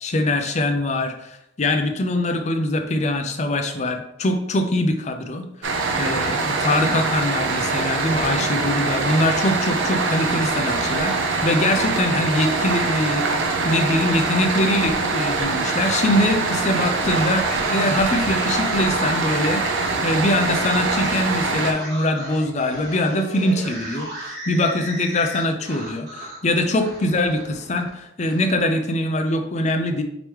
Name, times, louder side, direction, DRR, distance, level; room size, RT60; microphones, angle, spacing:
voice 1, 0.0-5.4 5.7-11.1 11.4-17.4 17.7-30.0, left 1 dB, 35° left, 4 dB, 0.5 m, -23 dB
sound 1, 5.6-21.7, right 3 dB, 85° right, 0.7 m, -23 dB
sound 2, 14.8-15.1 17.0-19.1, equal, 20° right, 1.5 m, -39 dB
sound 3, 15.2-19.1 19.7-20.0 20.4-26.4 26.7-28.5, right 1 dB, 60° right, 1.4 m, -36 dB
5.1 x 3.0 x 3.1 m, 0.79 s
head